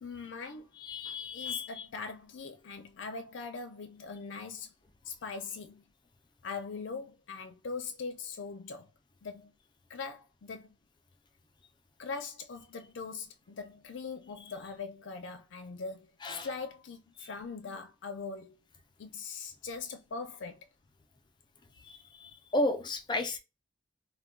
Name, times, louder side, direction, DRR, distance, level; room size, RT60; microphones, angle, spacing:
voice 1, 0.0-0.7 1.1-4.7 5.1-5.8 6.4-8.9 9.2-9.5 9.9-10.7 12.0-18.6 19.0-20.6, left 4 dB, 80° left, 0.5 m, -41 dB
voice 2, 0.8-1.9 16.2-16.5 17.2-17.3 21.8-23.4, left 2 dB, 25° left, 0.4 m, -33 dB
2.2 x 2.2 x 3.6 m
head